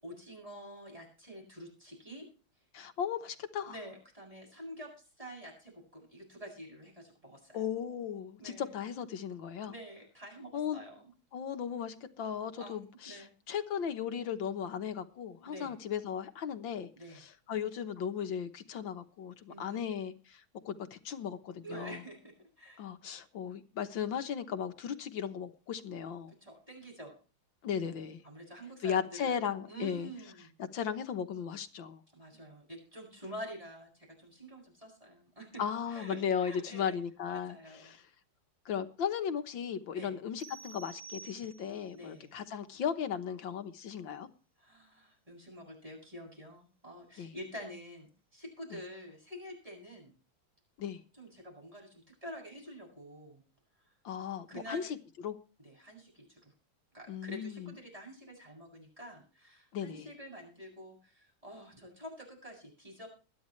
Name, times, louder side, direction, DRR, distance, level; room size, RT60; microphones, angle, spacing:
voice 1, 0.0-2.3 3.6-7.6 8.4-8.8 9.7-11.1 12.5-13.3 15.4-15.8 17.0-17.2 19.5-19.8 21.6-22.8 26.3-27.2 28.2-29.3 29.7-30.5 32.1-35.6 35.9-37.0 37.3-37.9 39.9-40.2 41.9-42.3 44.6-50.1 51.1-53.4 54.5-54.9 55.6-56.5 56.9-63.1, equal, 15° right, 7.9 m, -48 dB
voice 2, 2.7-3.7 7.5-9.7 10.5-10.8 11.3-16.9 17.2-22.0 22.8-26.3 27.6-28.2 28.8-30.1 30.7-32.0 35.6-37.6 37.8-38.0 38.7-44.3 47.2-47.3 50.8-51.0 54.1-54.9 55.2-55.4 57.1-57.7 59.7-60.1, left 8 dB, 65° left, 1.8 m, -36 dB
sound 1, 40.4-42.0, right 5 dB, 65° right, 3.6 m, -50 dB
21.0 x 11.0 x 3.2 m
omnidirectional pair, 2.3 m